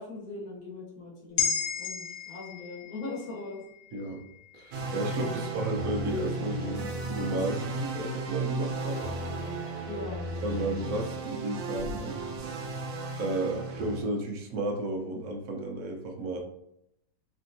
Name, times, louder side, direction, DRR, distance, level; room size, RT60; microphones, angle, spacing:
voice 1, 0.0-3.6 9.9-10.3 10.6-10.8, left 3 dB, 60° left, -4 dB, 1.2 m, -40 dB
sound 1, 1.4-5.9 6.3-6.4, left 7 dB, 80° left, 1.3 m, -35 dB
voice 2, 4.5-9.2 10.4-12.2 13.1-16.4, right 2 dB, 65° right, 2 dB, 0.8 m, -33 dB
sound 2, 4.7-14.0, right 2 dB, 85° right, 1.3 m, -35 dB
3.4 x 2.7 x 2.5 m, 0.79 s
omnidirectional pair, 1.9 m